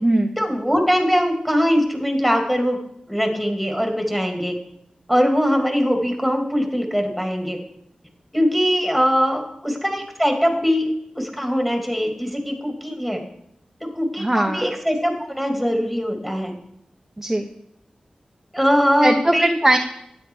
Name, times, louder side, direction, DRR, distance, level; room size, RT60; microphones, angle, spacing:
voice 1, 0.4-2.8 3.1-4.5 5.1-7.6 8.3-13.2 13.8-16.5 18.5-19.5, equal, 5° left, 3 dB, 2.9 m, -21 dB
voice 2, 14.2-14.6 17.2-17.5 19.0-19.8, right 1 dB, 10° right, 4 dB, 0.9 m, -19 dB
12.5 x 9.7 x 4.8 m, 0.76 s
wide cardioid pair, 65°, 2 cm